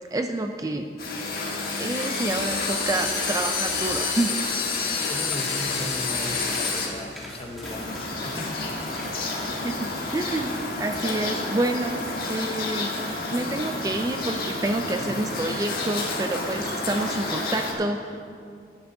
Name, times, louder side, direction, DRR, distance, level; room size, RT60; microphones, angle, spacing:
voice 1, 0.1-0.9 1.8-4.4 9.4-12.9 13.3-18.2, right 2 dB, 20° right, 6 dB, 0.3 m, -28 dB
sound 1, 1.0-6.9 7.6-17.7, left 3 dB, 55° left, 1.5 m, -29 dB
Dishes pots and pans / Frying (food), 2.2-11.4, right 1 dB, 90° right, 1.7 m, -47 dB
sound 2, 3.2-17.7, equal, ahead, 1.4 m, -47 dB
voice 2, 5.1-8.7, left 1 dB, 30° left, 3 dB, 0.8 m, -37 dB
15.0 x 10.0 x 2.7 m, 2.3 s
head